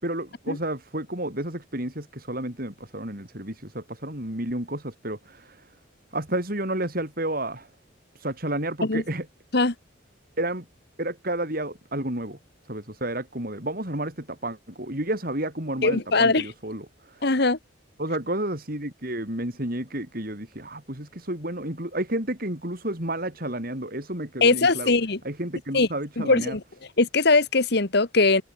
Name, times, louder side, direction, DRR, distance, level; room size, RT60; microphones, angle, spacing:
voice 1, 0.0-5.7 6.1-7.7 8.1-9.3 10.4-10.7 11.0-12.4 12.7-17.3 18.0-24.9 25.2-26.6, right 1 dB, 45° right, 5.7 m, -31 dB
voice 2, 15.8-16.5 17.2-17.6 24.4-25.2 25.7-25.9 26.2-26.6 27.0-28.4, left 3 dB, 55° left, 1.5 m, -21 dB
head